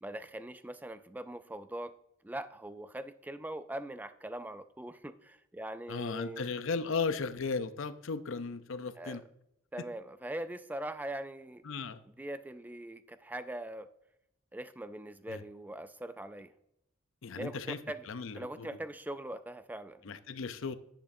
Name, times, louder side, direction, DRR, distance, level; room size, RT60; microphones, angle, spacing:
voice 1, 0.0-2.0 2.2-6.5 9.0-9.2 9.7-11.6 12.2-13.9 14.5-16.5 17.4-18.0 18.4-20.0, right 1 dB, 10° right, 12 dB, 0.3 m, -41 dB
voice 2, 5.9-9.2 11.6-12.0 15.3-15.4 17.2-17.8 18.1-18.7 20.0-20.7, left 4 dB, 65° left, 12 dB, 0.6 m, -36 dB
10.0 x 8.8 x 2.6 m, 0.80 s
head